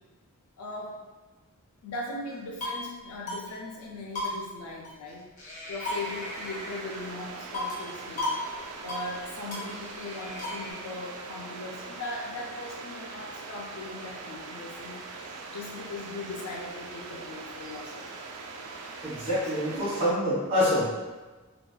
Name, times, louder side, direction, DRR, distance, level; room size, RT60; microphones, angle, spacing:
voice 1, 0.6-1.0 1.8-5.3 5.7-8.3 8.8-18.1 19.2-19.9, left 2 dB, 85° left, -2 dB, 0.4 m, -39 dB
sound 1, 2.3-2.9 3.3-3.4 3.7-3.8 4.2-5.1 5.4-7.1 7.5-7.9 8.2-8.4 8.7-9.1 9.5-10.7, left 2 dB, 35° left, 0.6 m, -35 dB
sound 2, 5.8-20.1, right 3 dB, 90° right, 0.3 m, -42 dB
voice 2, 19.0-20.9, left 1 dB, 30° right, -12 dB, 1.4 m, -26 dB
2.6 x 2.3 x 2.2 m, 1.2 s
head